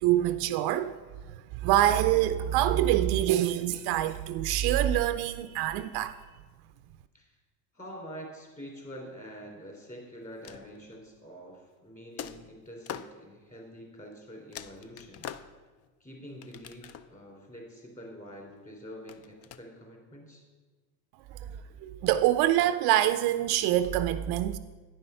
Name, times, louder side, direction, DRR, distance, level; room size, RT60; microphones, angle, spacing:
voice 1, 0.0-1.0 1.3-6.2 21.3-21.5 21.8-24.6, right 13 dB, 65° right, 0.5 m, -25 dB
voice 2, 7.7-15.3 16.0-20.4 21.4-21.7, equal, 20° left, 3.1 m, -46 dB
sound 1, 10.2-11.1 12.2-13.2 14.1-14.2 14.5-15.9 16.4-17.3 19.1-19.6, left 9 dB, 40° left, 0.4 m, -44 dB
9.7 x 5.5 x 5.5 m
supercardioid pair, 100°, 42 cm